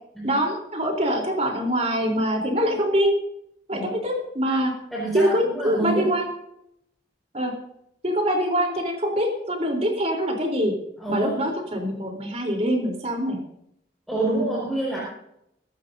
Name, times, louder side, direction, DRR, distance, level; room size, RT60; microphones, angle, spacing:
voice 1, 0.2-3.1 3.7-4.7 5.1-6.3 7.3-7.5 8.0-10.7 11.1-13.4, equal, 35° right, 1 dB, 3.7 m, -24 dB
voice 2, 4.9-6.1 11.0-11.4 14.1-15.0, right 2 dB, ahead, -5 dB, 5.1 m, -27 dB
24.0 x 12.5 x 2.7 m, 0.77 s
head